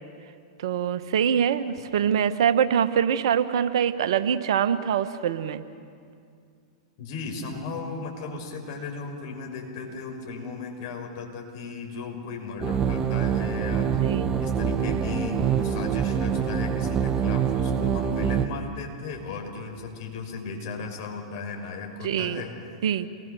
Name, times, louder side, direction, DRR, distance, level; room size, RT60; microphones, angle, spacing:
voice 1, 0.6-5.6 14.0-14.3 22.0-22.4 22.8-23.1, right 8 dB, 65° right, 11 dB, 1.3 m, -24 dB
voice 2, 7.0-22.6, left 4 dB, 50° left, 2 dB, 6.1 m, -36 dB
sound 1, 12.6-18.5, right 7 dB, 25° right, 1.3 m, -25 dB
28.5 x 21.0 x 7.0 m, 2.3 s
figure-of-eight pair, 100°, 3 cm